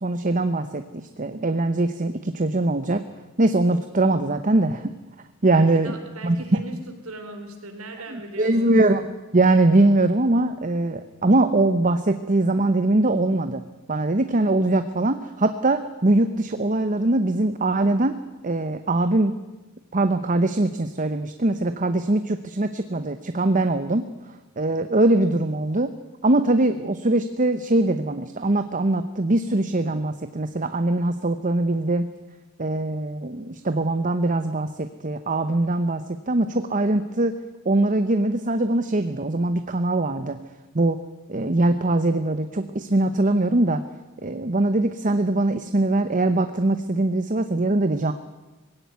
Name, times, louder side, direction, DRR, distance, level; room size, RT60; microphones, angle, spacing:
voice 1, 0.0-3.0 3.4-4.9 5.4-5.9 6.2-6.6 8.1-9.0 9.3-13.6 13.9-18.1 18.4-19.3 19.9-24.0 24.6-25.9 26.2-32.1 32.6-37.4 37.6-40.4 40.7-41.0 41.3-43.8 44.2-48.1, right 2 dB, 40° right, 9 dB, 0.9 m, -22 dB
voice 2, 5.4-8.8, right 2 dB, 90° right, 6 dB, 3.9 m, -38 dB
20.5 x 16.5 x 9.4 m, 1.1 s
head